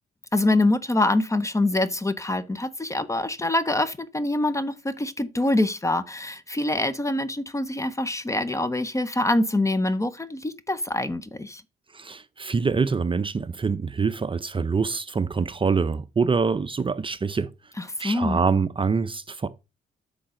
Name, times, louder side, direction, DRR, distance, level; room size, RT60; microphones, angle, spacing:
voice 1, 0.3-11.6 17.8-18.4, left 2 dB, 15° left, 0.7 m, -25 dB
voice 2, 11.9-17.5 18.0-19.5, right 5 dB, 25° right, 0.6 m, -25 dB
8.5 x 5.8 x 3.8 m
cardioid pair, 90°, 20 cm